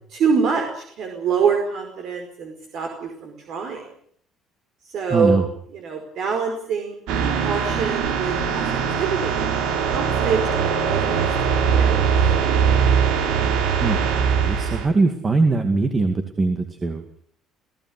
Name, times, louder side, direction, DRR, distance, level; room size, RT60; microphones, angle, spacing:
voice 1, 0.1-3.8 4.8-5.4 5.7-7.0 7.4-9.4 9.8-12.0, right 6 dB, 55° right, 3 dB, 5.1 m, -25 dB
voice 2, 5.1-5.4 13.8-14.1 14.3-17.2, right 3 dB, 20° right, 6 dB, 2.3 m, -21 dB
sound 1, 7.1-14.9, right 7 dB, 85° right, 4.8 m, -21 dB
26.5 x 16.5 x 9.9 m, 0.64 s
cardioid pair, 155°, 0 cm